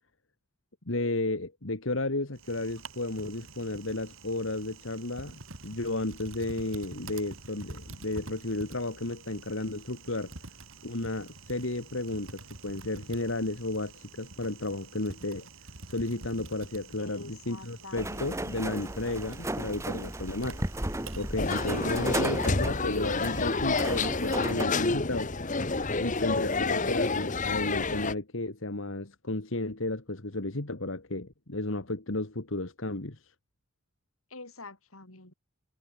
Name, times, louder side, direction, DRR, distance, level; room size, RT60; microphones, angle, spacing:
voice 1, 0.9-5.4 5.6-10.3 10.8-15.5 15.9-20.6 21.1-25.3 26.0-33.2, left 2 dB, 65° left, 2.0 m, -33 dB
Typing, 2.3-22.0, right 3 dB, 70° right, 4.1 m, -48 dB
voice 2, 17.0-18.7 34.3-35.3, left 2 dB, 85° left, 6.0 m, -46 dB
sound 1, 18.0-24.7, right 1 dB, 15° right, 1.9 m, -34 dB
sound 2, 21.4-28.1, left 3 dB, 35° left, 1.3 m, -29 dB
head